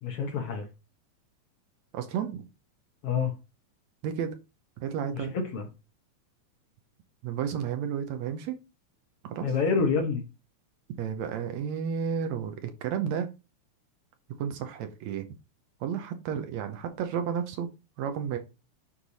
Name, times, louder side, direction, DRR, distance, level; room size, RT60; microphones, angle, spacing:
voice 1, 0.0-0.7 3.0-3.3 5.1-5.3 5.5-5.7 9.4-10.2, left 5 dB, 60° left, 1.8 m, -27 dB
voice 2, 1.9-2.5 4.0-4.4 4.8-5.3 7.2-8.6 9.2-9.5 11.0-13.3 14.4-15.3 15.8-17.7 18.0-18.4, right 8 dB, 75° right, 1.9 m, -32 dB
9.8 x 3.3 x 4.1 m
omnidirectional pair, 3.5 m